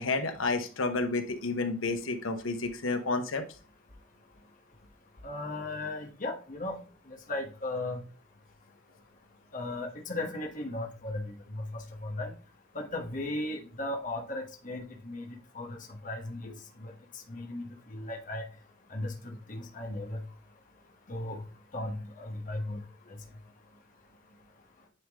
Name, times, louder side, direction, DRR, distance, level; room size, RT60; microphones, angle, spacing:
voice 1, 0.0-3.4 16.4-16.5, left 3 dB, 85° left, 7 dB, 1.0 m, -30 dB
voice 2, 5.2-6.8 7.3-8.0 9.5-12.3 12.7-15.3 15.5-15.7 16.0-16.5 16.8-16.9 17.3-17.6 17.9-18.4 18.9-20.2 21.1-21.4 21.7-22.8, left 2 dB, 40° left, 1 dB, 1.2 m, -36 dB
9.4 x 3.7 x 3.6 m, 0.36 s
head